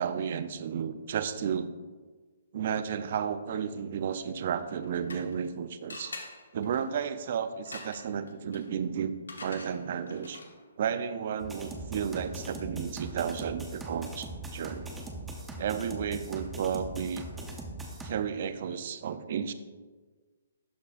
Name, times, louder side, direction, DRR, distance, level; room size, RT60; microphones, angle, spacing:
voice 1, 0.0-1.7 2.5-6.1 6.5-9.1 9.4-10.4 10.8-14.9 15.6-17.3 18.0-19.5, right 7 dB, 55° right, 12 dB, 0.4 m, -32 dB
sound 1, 4.6-5.5 5.9-10.7, left 3 dB, 85° left, 0.9 m, -47 dB
sound 2, 11.4-18.1, right 2 dB, 5° right, 0.7 m, -40 dB
12.0 x 4.0 x 2.4 m, 1.4 s
hypercardioid pair, 145°, 0 cm